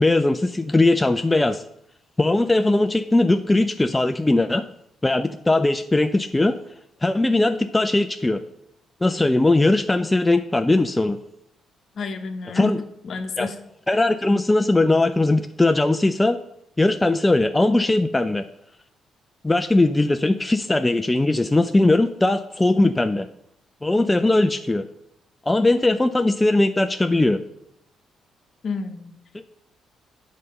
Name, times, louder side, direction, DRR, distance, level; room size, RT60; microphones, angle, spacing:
voice 1, 0.0-1.6 2.2-4.7 5.0-6.6 7.0-8.4 9.0-11.2 12.5-12.8 13.4-13.5 13.9-16.4 16.8-18.4 19.4-23.3 23.8-24.8 25.5-27.4 29.3-29.4, left 2 dB, 15° left, 8 dB, 0.4 m, -19 dB
voice 2, 12.0-12.8 13.0-13.6 28.6-29.2, left 4 dB, 55° left, 7 dB, 0.9 m, -29 dB
7.5 x 4.1 x 6.6 m, 0.73 s
cardioid pair, 90°, 0 cm